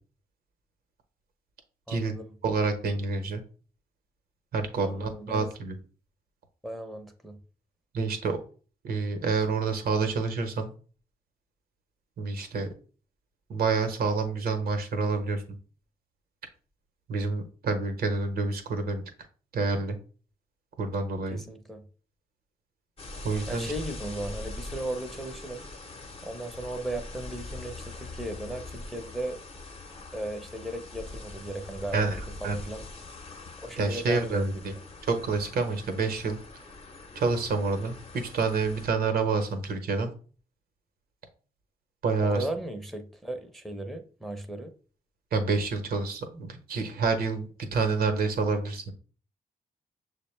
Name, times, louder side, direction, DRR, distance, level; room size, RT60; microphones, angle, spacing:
voice 1, 1.9-2.3 4.8-5.5 6.6-7.4 21.3-21.8 23.5-25.6 26.2-29.4 30.1-32.9 33.6-34.8 42.3-44.7, right 1 dB, ahead, 0.7 m, -36 dB
voice 2, 2.4-3.4 4.5-5.7 7.9-8.4 8.8-10.7 12.2-12.7 13.5-15.4 17.1-19.0 19.5-20.0 20.8-21.4 23.2-23.7 31.9-32.2 32.4-32.6 33.8-34.7 35.1-36.6 37.1-40.1 42.0-42.4 45.3-48.9, right 4 dB, 65° right, 0.9 m, -28 dB
sound 1, 23.0-38.9, left 2 dB, 35° left, 0.9 m, -43 dB
6.4 x 2.2 x 3.2 m
supercardioid pair, 50°, 16 cm